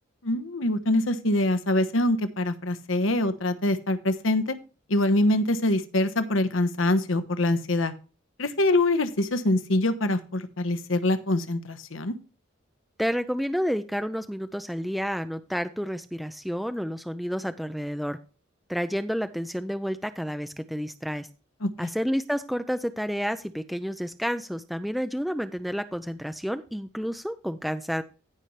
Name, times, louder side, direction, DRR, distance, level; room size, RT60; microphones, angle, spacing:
voice 1, 0.2-4.5 4.9-7.9 8.4-12.1 21.6-21.9, left 1 dB, 85° left, 11 dB, 1.2 m, -24 dB
voice 2, 13.0-18.2 18.7-21.3 21.8-28.0, equal, ahead, 9 dB, 0.4 m, -30 dB
15.5 x 5.6 x 3.2 m, 0.34 s
head